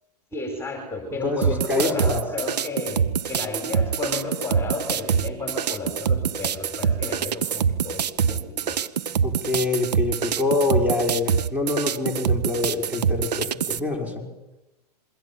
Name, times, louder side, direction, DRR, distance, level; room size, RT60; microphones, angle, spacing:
voice 1, 0.3-8.8, left 3 dB, 10° left, 3 dB, 4.9 m, -32 dB
voice 2, 1.2-2.2 9.2-14.2, left 3 dB, 5° right, 2 dB, 5.8 m, -25 dB
sound 1, 1.4-13.8, right 7 dB, 85° right, 1.2 m, -25 dB
28.0 x 23.0 x 7.5 m, 1.0 s
hypercardioid pair, 120°, 20 cm